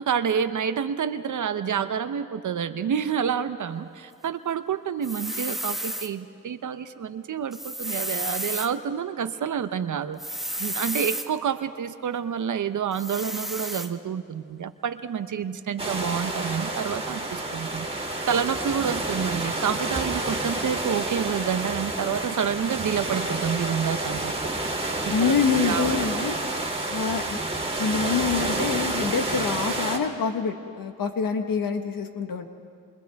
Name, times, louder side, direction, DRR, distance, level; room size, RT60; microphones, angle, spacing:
voice 1, 0.0-10.2 10.5-17.9 18.3-24.3 25.2-25.4 25.6-26.1, right 7 dB, 60° right, 10 dB, 0.8 m, -28 dB
sound 1, 5.0-6.1 7.5-8.7 10.2-11.3 12.9-13.9, equal, ahead, 1.4 m, -32 dB
sound 2, 15.8-30.0, right 2 dB, 15° right, 2.9 m, -29 dB
voice 2, 25.1-26.4 26.9-27.4 27.8-32.5, left 5 dB, 75° left, 6 dB, 1.5 m, -26 dB
29.5 x 27.5 x 3.5 m, 2.4 s
cardioid pair, 70°, 34 cm